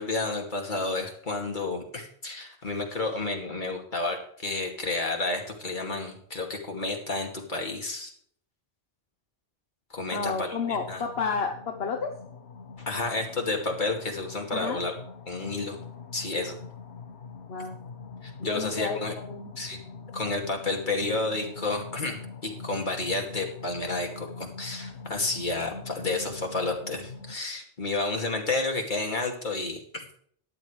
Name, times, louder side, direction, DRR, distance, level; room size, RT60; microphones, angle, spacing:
voice 1, 0.0-8.1 9.9-11.0 12.8-14.9 15.3-15.8 16.1-16.5 18.2-19.1 19.6-19.8 20.1-29.8, left 3 dB, 45° left, 1 dB, 2.6 m, -31 dB
voice 2, 10.1-12.1 14.5-14.8 17.5-17.8 18.4-19.5, left 5 dB, 65° left, 2 dB, 1.4 m, -31 dB
sound 1, 10.7-27.4, left 4 dB, 90° left, 1.4 m, -43 dB
14.5 x 10.5 x 3.3 m, 0.62 s
omnidirectional pair, 1.1 m